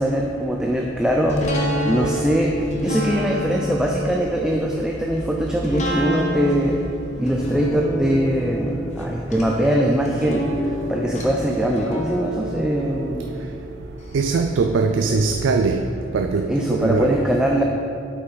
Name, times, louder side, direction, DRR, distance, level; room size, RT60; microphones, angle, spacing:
voice 1, 0.0-6.8 7.2-13.3 16.5-17.6, equal, 5° right, 0 dB, 0.4 m, -22 dB
sound 1, 1.3-14.2 14.6-14.7, left 1 dB, 40° left, 1.0 m, -29 dB
voice 2, 14.1-15.8 16.1-17.2, right 4 dB, 75° right, 5 dB, 0.3 m, -21 dB
8.1 x 5.5 x 4.0 m, 2.4 s
head